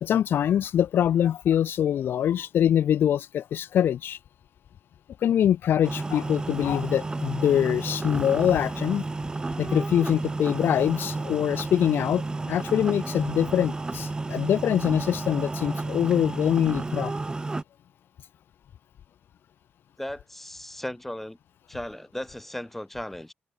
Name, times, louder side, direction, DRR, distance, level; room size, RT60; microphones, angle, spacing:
voice 1, 0.0-4.2 5.2-9.0 9.6-17.1, left 10 dB, 75° left, 0.5 m, -24 dB
sound 1, 5.8-17.6, right 3 dB, 20° right, 2.0 m, -31 dB
voice 2, 20.0-21.4 21.7-23.3, left 1 dB, 5° left, 2.4 m, -36 dB
open air
cardioid pair, 110°, 4 cm